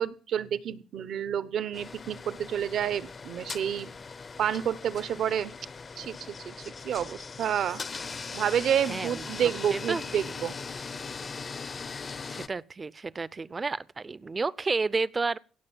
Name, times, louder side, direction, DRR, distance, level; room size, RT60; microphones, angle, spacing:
voice 1, 0.0-3.9 4.4-5.5 6.0-6.2 6.4-7.8 8.3-10.5, right 9 dB, 70° right, 0.9 m, -29 dB
sound 1, 1.7-12.5, left 4 dB, 35° left, 0.6 m, -40 dB
voice 2, 8.9-9.3 9.7-10.0 12.3-15.4, right 4 dB, 30° right, 0.5 m, -31 dB
16.5 x 6.6 x 7.1 m
cardioid pair, 90°, 0 cm